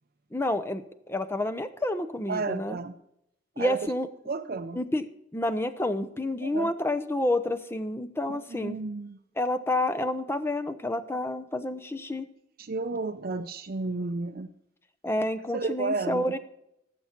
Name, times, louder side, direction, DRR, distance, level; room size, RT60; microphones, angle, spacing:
voice 1, 0.3-2.8 3.6-4.1 4.8-5.0 5.3-8.8 9.4-12.3 15.0-16.4, left 1 dB, 15° left, 11 dB, 0.7 m, -29 dB
voice 2, 2.3-3.0 3.6-3.9 4.2-4.8 6.4-6.7 8.3-9.2 12.6-14.5 15.5-16.4, right 3 dB, 50° right, 5 dB, 0.6 m, -32 dB
18.0 x 7.1 x 4.5 m, 0.80 s
head